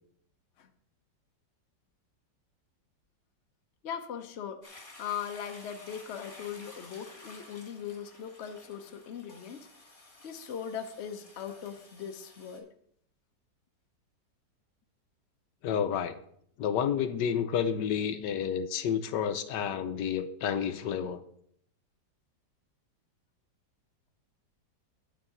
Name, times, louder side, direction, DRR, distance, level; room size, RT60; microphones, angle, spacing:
voice 1, 3.8-9.7 10.2-12.7, left 8 dB, 50° left, 0.9 m, -39 dB
Toilet flush, 4.6-12.6, left 2 dB, 30° left, 2.1 m, -53 dB
voice 2, 15.6-16.2 16.6-21.2, left 8 dB, 75° left, 1.3 m, -30 dB
9.8 x 4.7 x 7.8 m
omnidirectional pair, 1.9 m